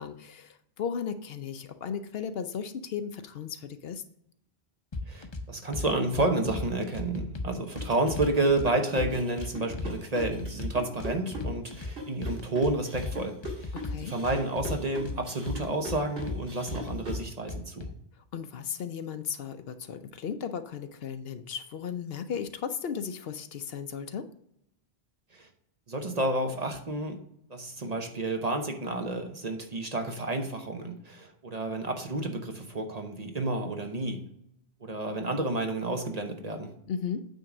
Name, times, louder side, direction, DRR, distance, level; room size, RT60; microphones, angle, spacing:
voice 1, 0.0-4.0 13.7-14.1 18.3-24.3 36.9-37.3, left 7 dB, 65° left, 10 dB, 0.8 m, -35 dB
sound 1, 4.9-5.4 5.7-6.7 6.9-8.7 9.0-9.9 10.2-11.9 12.2-13.1 13.4-15.2 15.5-16.4 16.7-17.9, left 3 dB, 30° left, 0.7 m, -35 dB
voice 2, 5.1-13.7 14.0-17.9 25.3-25.5 25.9-27.2 27.5-34.2 34.8-36.7, right 2 dB, 40° right, 4 dB, 0.9 m, -30 dB
sound 2, 7.8-17.3, left 1 dB, 65° right, 2.2 m, -41 dB
9.1 x 3.7 x 6.0 m, 0.76 s
omnidirectional pair, 1.1 m